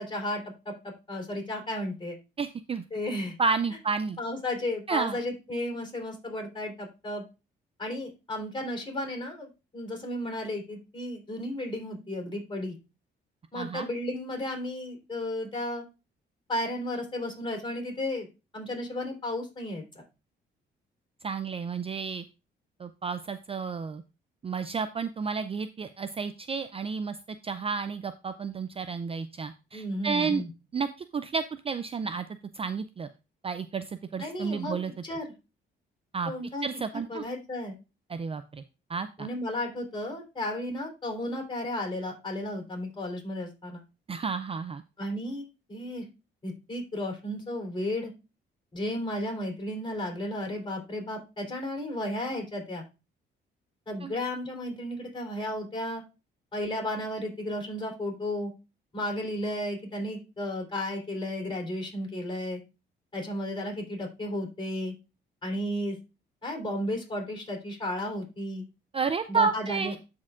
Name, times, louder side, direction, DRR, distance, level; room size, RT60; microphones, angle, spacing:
voice 1, 0.0-2.2 2.9-3.4 4.2-7.2 7.8-12.8 13.5-15.8 16.5-18.3 18.5-20.0 29.7-30.5 34.2-34.7 35.0-35.3 36.3-36.7 37.1-37.7 39.2-43.8 45.0-46.1 46.4-48.1 48.7-52.8 53.9-56.0 56.5-58.5 58.9-62.6 63.1-64.9 65.4-66.0 66.4-68.6 69.3-69.9, left 1 dB, 25° left, 2 dB, 3.6 m, -33 dB
voice 2, 2.4-2.8 3.4-4.2 4.9-5.2 13.5-13.9 21.2-22.2 22.8-24.0 24.4-27.2 27.4-30.4 30.7-30.9 31.1-32.3 32.5-33.1 33.4-34.9 36.1-36.3 36.6-37.2 38.1-38.6 38.9-39.3 44.1-44.8 54.0-54.1 68.9-69.9, right 5 dB, 30° right, 11 dB, 0.4 m, -31 dB
13.0 x 4.4 x 2.5 m, 0.29 s
cardioid pair, 90°, 20 cm